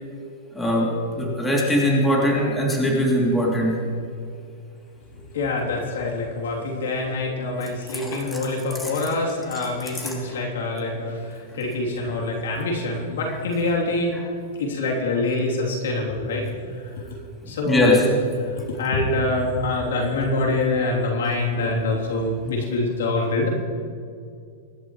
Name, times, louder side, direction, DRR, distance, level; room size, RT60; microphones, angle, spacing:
voice 1, 0.5-3.8 7.6-8.4 8.8-9.0 9.5-9.6 10.0-10.2 17.4-18.1, equal, 10° left, -3 dB, 2.9 m, -22 dB
voice 2, 5.3-14.1 14.6-16.7 17.0-17.2 17.5-18.0 18.6-23.5, left 2 dB, 90° left, -2 dB, 3.1 m, -25 dB
23.5 x 11.5 x 3.2 m, 2.3 s
supercardioid pair, 150°, 0 cm